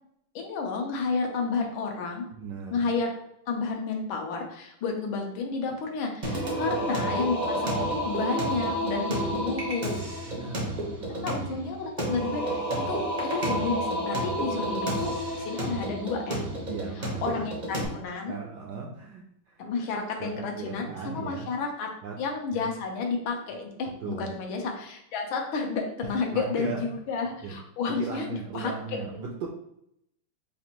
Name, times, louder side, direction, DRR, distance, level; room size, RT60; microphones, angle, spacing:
voice 1, 0.3-2.2 2.7-3.1 3.5-10.0 11.2-12.6 12.9-16.4 17.0-18.4 19.6-29.0, left 4 dB, 75° left, 2 dB, 1.4 m, -31 dB
voice 2, 2.3-2.9 6.5-6.8 10.3-11.3 14.5-14.7 16.7-17.5 18.2-19.6 20.2-21.5 22.0-22.2 22.5-22.7 24.0-24.3 26.3-26.9 27.4-27.6 27.9-29.5, right 5 dB, 80° right, -1 dB, 1.0 m, -38 dB
Singing, 6.2-17.9, right 1 dB, 55° right, 0.4 m, -30 dB
5.0 x 2.5 x 2.9 m, 0.75 s
omnidirectional pair, 2.4 m